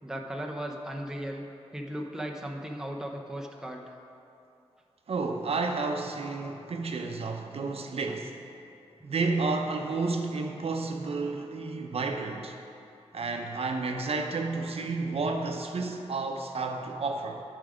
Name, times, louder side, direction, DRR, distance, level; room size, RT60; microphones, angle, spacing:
voice 1, 0.0-3.8 7.6-7.7 8.1-8.2 14.1-14.3 14.6-14.7, equal, 5° right, 1 dB, 0.7 m, -37 dB
voice 2, 5.1-8.4 9.0-12.6 13.1-17.4, right 3 dB, 65° right, 3 dB, 0.7 m, -31 dB
9.6 x 5.2 x 4.9 m, 2.7 s
wide cardioid pair, 90°, 11 cm